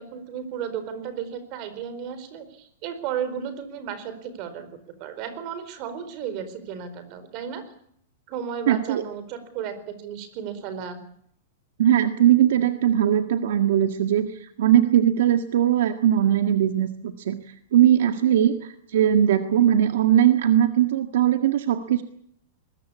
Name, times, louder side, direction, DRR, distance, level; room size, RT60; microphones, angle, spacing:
voice 1, 0.0-4.7 5.0-7.6 8.3-11.0, right 8 dB, 35° right, 11 dB, 4.4 m, -34 dB
voice 2, 8.7-9.0 11.8-17.4 17.7-22.0, right 10 dB, 65° right, 7 dB, 1.7 m, -20 dB
23.0 x 21.0 x 8.5 m, 0.67 s
supercardioid pair, 170°, 0 cm